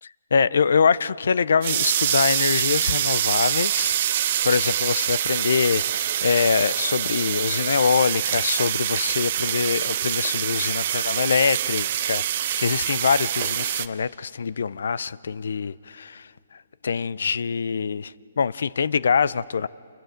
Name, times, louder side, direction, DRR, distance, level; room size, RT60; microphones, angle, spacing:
voice 1, 0.0-16.2 16.8-19.7, left 6 dB, 70° left, 21 dB, 0.5 m, -24 dB
sound 1, 1.6-13.9, right 11 dB, 45° right, 0.7 m, -25 dB
28.0 x 23.0 x 5.1 m, 2.4 s
hypercardioid pair, 145°, 0 cm